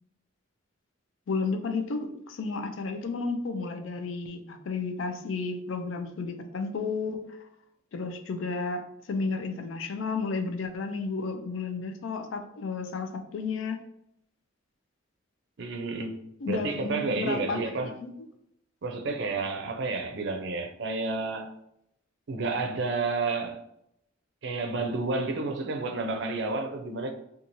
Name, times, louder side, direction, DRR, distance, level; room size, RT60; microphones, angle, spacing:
voice 1, 1.3-7.2 7.9-8.8 9.1-13.8 16.4-18.3, left 4 dB, 80° left, 0.4 m, -32 dB
voice 2, 15.6-18.0 18.8-21.5 22.3-23.6 24.4-27.1, right 3 dB, 65° right, 0.4 m, -30 dB
2.9 x 2.3 x 2.6 m
head